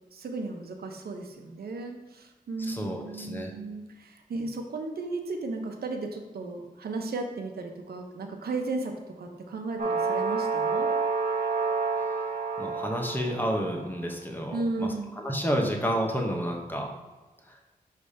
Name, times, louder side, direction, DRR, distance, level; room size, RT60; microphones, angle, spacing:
voice 1, 0.1-10.9 14.5-15.2, right 3 dB, 80° right, 3 dB, 0.9 m, -35 dB
voice 2, 2.6-3.5 12.6-16.9, equal, 10° left, 1 dB, 1.1 m, -30 dB
sound 1, 9.8-13.8, right 4 dB, 55° right, 1.2 m, -29 dB
5.0 x 3.4 x 5.5 m, 1.2 s
cardioid pair, 70°, 16 cm